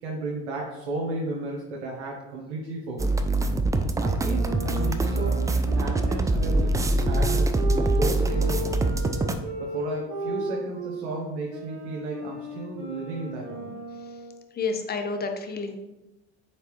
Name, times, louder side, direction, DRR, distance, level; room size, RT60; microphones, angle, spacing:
voice 1, 0.0-3.2 4.0-9.0 9.6-13.7, right 2 dB, 85° right, -3 dB, 0.9 m, -34 dB
sound 1, 3.0-9.3, right 2 dB, 10° right, 0.3 m, -24 dB
sound 2, 4.4-11.1 11.5-14.5, right 2 dB, 60° right, 1.3 m, -35 dB
voice 2, 14.6-15.8, left 4 dB, 30° left, 5 dB, 0.8 m, -29 dB
4.5 x 3.8 x 3.1 m, 0.97 s
hypercardioid pair, 75°, 33 cm